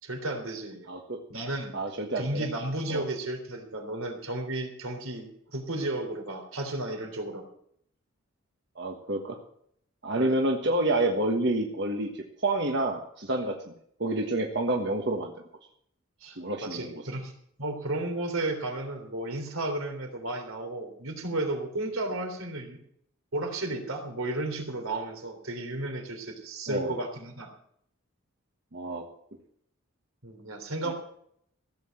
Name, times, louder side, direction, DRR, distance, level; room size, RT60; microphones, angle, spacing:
voice 1, 0.0-0.9 1.3-1.7 2.1-7.5 10.2-10.4 16.2-17.3 17.6-22.8 23.3-27.5 30.2-30.9, right 2 dB, 85° right, 4 dB, 3.4 m, -33 dB
voice 2, 0.9-1.2 1.7-2.5 2.9-3.0 8.8-9.4 10.0-13.6 14.0-15.3 16.4-17.0 26.7-26.9 28.7-29.1 30.8-30.9, right 2 dB, 55° right, 2 dB, 1.4 m, -28 dB
15.5 x 7.8 x 7.6 m, 0.69 s
head